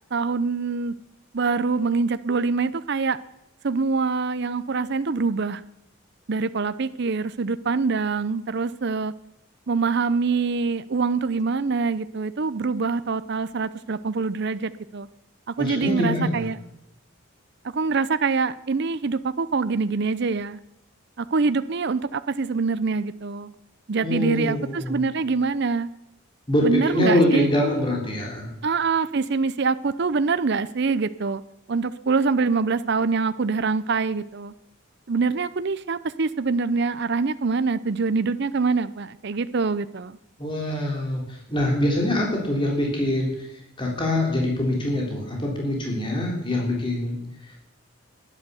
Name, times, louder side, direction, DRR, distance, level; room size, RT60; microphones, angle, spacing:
voice 1, 0.1-1.0 1.3-3.2 3.6-5.6 6.3-9.1 9.7-15.1 15.5-16.6 17.6-20.6 21.2-23.5 23.9-25.9 26.6-27.5 28.6-31.4 31.7-34.5 35.1-40.2, right 4 dB, 50° right, 13 dB, 0.5 m, -24 dB
voice 2, 15.6-16.5 24.0-25.0 26.5-28.5 40.4-47.6, left 1 dB, 25° left, -1 dB, 3.6 m, -24 dB
19.0 x 10.5 x 7.0 m, 0.86 s
head